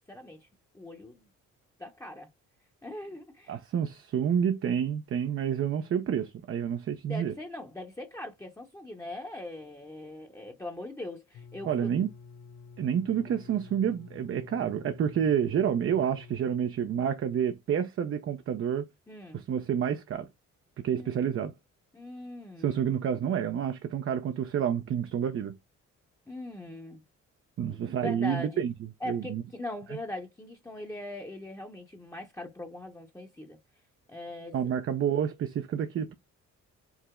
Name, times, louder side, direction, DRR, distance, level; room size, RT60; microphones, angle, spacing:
voice 1, 0.1-0.5 0.7-1.3 1.8-2.3 2.8-3.6 7.1-11.9 19.1-19.4 20.9-21.4 21.9-22.7 26.3-27.0 27.6-28.6 29.0-33.6 34.1-34.8, left 1 dB, 10° left, 0.8 m, -41 dB
voice 2, 3.5-7.3 11.6-12.1 12.8-18.9 19.3-20.3 20.8-21.5 22.6-25.6 27.6-28.7 29.1-29.4 34.5-36.1, right 8 dB, 45° right, 0.5 m, -29 dB
sound 1, 11.3-16.6, left 5 dB, 60° left, 0.7 m, -50 dB
4.8 x 2.0 x 3.6 m
cardioid pair, 90°, 30 cm